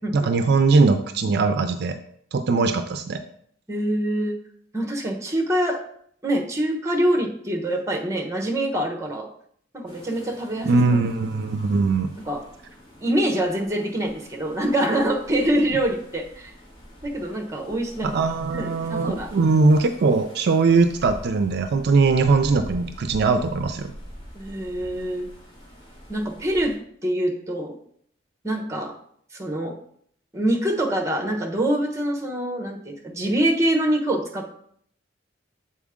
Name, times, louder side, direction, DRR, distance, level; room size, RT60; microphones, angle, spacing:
voice 1, 0.1-2.0 2.3-3.2 10.6-12.1 18.0-23.9, right 4 dB, 60° right, 8 dB, 0.4 m, -20 dB
voice 2, 3.7-4.4 4.7-5.8 6.2-9.3 9.7-10.8 12.3-12.4 13.0-16.5 17.0-18.2 18.5-19.3 24.3-25.3 26.1-26.7 27.0-27.8 28.4-28.9 29.3-29.8 30.3-34.5, right 1 dB, 15° right, 2 dB, 1.0 m, -25 dB
sound 1, 9.9-26.8, equal, 25° left, 1.8 m, -44 dB
7.2 x 4.3 x 3.6 m, 0.64 s
head